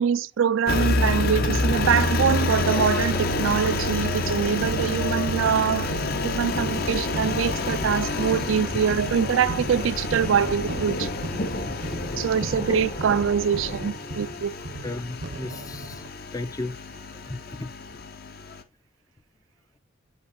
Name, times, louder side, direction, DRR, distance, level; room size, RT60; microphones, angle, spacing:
voice 1, 0.0-5.9 6.2-11.1 12.2-14.5, right 7 dB, 75° right, 0.4 m, -24 dB
Engine, 0.7-18.6, left 2 dB, 50° left, 0.7 m, -29 dB
sound 1, 1.4-16.1, right 2 dB, 60° right, 0.8 m, -38 dB
sound 2, 1.7-13.9, left 1 dB, 65° left, 1.9 m, -35 dB
voice 2, 14.8-16.0 16.3-16.7 17.3-17.7, left 2 dB, 20° left, 0.4 m, -34 dB
9.4 x 5.3 x 2.7 m
head